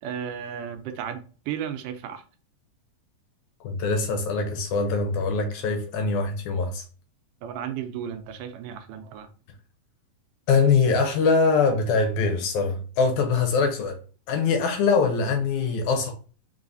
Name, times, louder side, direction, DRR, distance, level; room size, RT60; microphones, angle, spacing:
voice 1, 0.0-2.2 7.4-9.3, right 9 dB, 80° right, 8 dB, 2.1 m, -34 dB
voice 2, 3.6-6.8 10.5-14.0 14.3-16.1, left 4 dB, 75° left, 5 dB, 2.0 m, -23 dB
4.7 x 3.7 x 2.6 m, 0.38 s
omnidirectional pair, 3.8 m